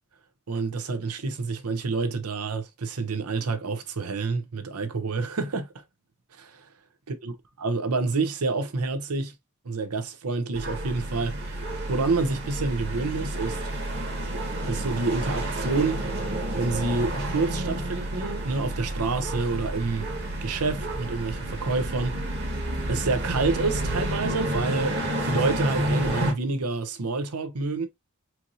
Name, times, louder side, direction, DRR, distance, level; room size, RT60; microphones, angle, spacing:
voice 1, 0.5-5.7 6.4-6.7 7.2-9.3 9.6-11.6 11.9-13.6 14.7-16.1 16.5-20.1 20.4-22.3 22.9-27.9, right 3 dB, 90° right, 0.8 m, -28 dB
sound 1, 10.5-26.3, right 1 dB, 45° right, 1.4 m, -30 dB
4.5 x 2.8 x 2.5 m
head